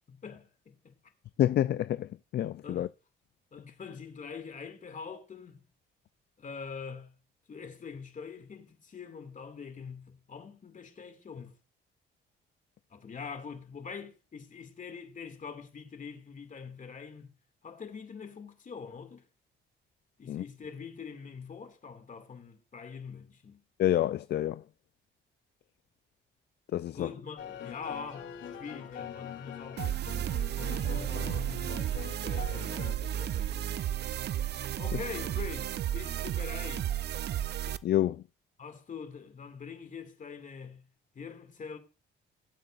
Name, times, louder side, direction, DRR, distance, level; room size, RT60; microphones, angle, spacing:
voice 1, 0.1-1.0 2.6-2.9 3.5-5.7 6.4-7.2 7.5-11.6 12.9-17.3 17.6-19.2 20.2-23.6 26.9-29.9 30.4-33.7 34.8-37.2 38.6-40.9 41.1-41.8, left 5 dB, 40° left, 2.3 m, -44 dB
voice 2, 1.4-2.9 20.3-20.4 23.8-24.6 26.7-27.1 34.9-35.0 37.8-38.2, left 12 dB, 55° left, 0.4 m, -28 dB
sound 1, 27.4-32.9, left 8 dB, 75° left, 2.6 m, -43 dB
sound 2, 29.8-37.8, right 11 dB, 55° right, 0.6 m, -33 dB
18.5 x 7.9 x 2.5 m
cardioid pair, 90°, 20 cm